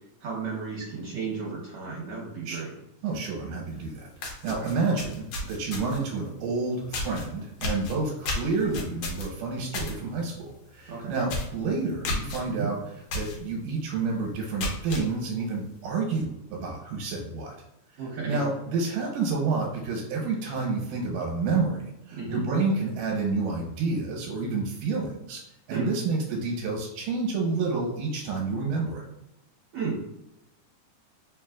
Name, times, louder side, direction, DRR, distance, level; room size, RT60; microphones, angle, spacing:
voice 1, 0.2-2.7 10.9-11.1 12.5-12.7 18.0-18.4 22.1-22.4 25.7-25.9 29.7-30.1, right 5 dB, 65° right, -5 dB, 1.5 m, -33 dB
voice 2, 3.0-12.8 13.1-17.5 18.3-25.4 25.7-29.0, right 4 dB, 85° right, -1 dB, 2.3 m, -29 dB
sound 1, 3.8-3.9 4.2-6.1 6.9-7.2 7.6-9.9 10.3-10.5 10.8-10.9 11.3-11.6 12.0-12.4 13.1-13.4 13.8-13.9 14.4-15.0, left 2 dB, 70° left, 1.8 m, -32 dB
4.6 x 3.1 x 2.3 m, 0.86 s
omnidirectional pair, 3.7 m